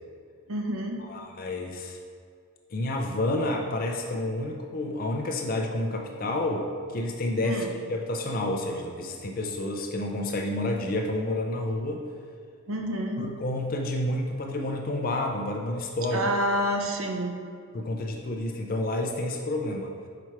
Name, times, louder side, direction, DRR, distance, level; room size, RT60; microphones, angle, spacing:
voice 1, 0.5-1.0 7.4-7.7 12.7-13.2 16.1-17.3, equal, 75° right, 2 dB, 0.8 m, -28 dB
voice 2, 1.0-2.0 2.7-7.6 7.9-12.0 13.2-16.3 17.7-19.9, left 1 dB, 40° left, 2 dB, 0.5 m, -29 dB
5.9 x 4.5 x 4.6 m, 2.2 s
head